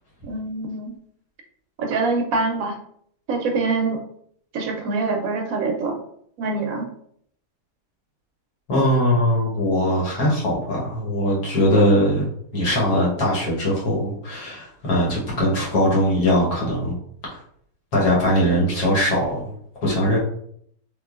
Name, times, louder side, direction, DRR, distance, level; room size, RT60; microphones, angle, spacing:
voice 1, 0.2-0.9 1.8-2.7 3.3-4.0 4.5-6.0 6.4-6.8, right 3 dB, 70° right, 3 dB, 0.9 m, -24 dB
voice 2, 8.7-17.0 17.3-17.4 17.9-19.5 19.8-20.2, equal, 75° left, -4 dB, 1.6 m, -21 dB
3.3 x 2.9 x 2.3 m, 0.66 s
omnidirectional pair, 1.6 m